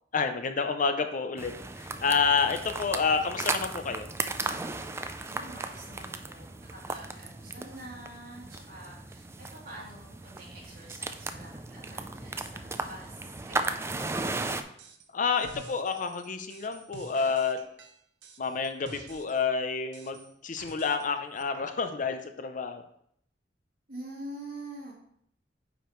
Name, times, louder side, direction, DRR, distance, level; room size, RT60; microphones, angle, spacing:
voice 1, 0.1-4.1 15.1-17.6 18.4-22.8, left 5 dB, 45° left, 8 dB, 0.5 m, -29 dB
sound 1, 1.4-14.6, right 3 dB, 15° right, 0.3 m, -36 dB
voice 2, 5.2-14.0 23.9-24.9, right 1 dB, 55° right, -5 dB, 2.9 m, -46 dB
sound 2, 14.8-15.1 15.4-19.5 19.9-21.1 21.4-21.5, right 3 dB, 80° right, 0.8 m, -50 dB
9.0 x 5.1 x 3.1 m, 0.71 s
head